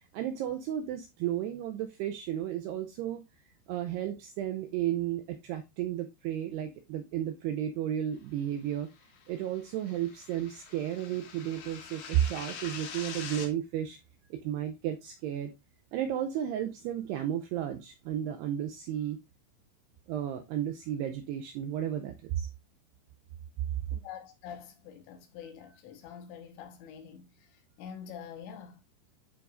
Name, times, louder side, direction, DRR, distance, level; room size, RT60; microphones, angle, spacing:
voice 1, 0.1-3.2 3.7-8.9 9.3-14.0 14.3-15.5 15.9-19.2 20.1-22.5, right 11 dB, 90° right, 2.3 m, -33 dB
sound 1, 9.0-13.5, left 6 dB, 60° left, 2.1 m, -44 dB
voice 2, 23.9-28.8, left 8 dB, 75° left, 3.3 m, -46 dB
12.5 x 4.6 x 2.5 m
omnidirectional pair, 5.4 m